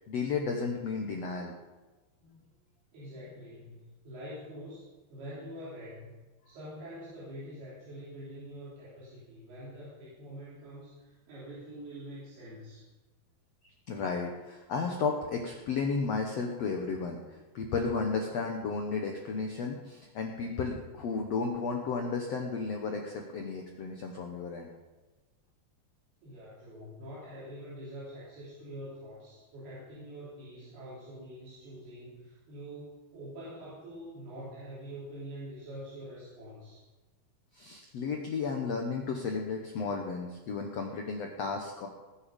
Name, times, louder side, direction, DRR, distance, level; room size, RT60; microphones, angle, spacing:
voice 1, 0.0-1.5 13.9-24.7 37.5-41.9, left 4 dB, 80° left, 2 dB, 1.4 m, -33 dB
voice 2, 2.2-2.5 2.9-12.8 26.2-36.8, equal, 70° right, -9 dB, 5.6 m, -45 dB
20.0 x 7.5 x 5.3 m, 1.2 s
omnidirectional pair, 4.6 m